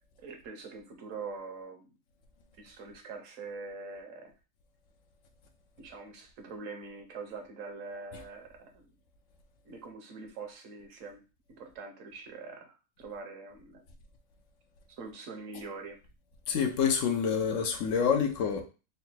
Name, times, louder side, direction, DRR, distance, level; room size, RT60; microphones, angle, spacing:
voice 1, 0.2-1.9 2.6-4.3 5.8-8.9 9.6-11.2 11.6-13.8 15.0-16.0, right 4 dB, 70° right, 1.2 m, -44 dB
voice 2, 16.5-18.6, left 7 dB, 75° left, 1.0 m, -27 dB
3.9 x 2.2 x 4.3 m
omnidirectional pair, 1.4 m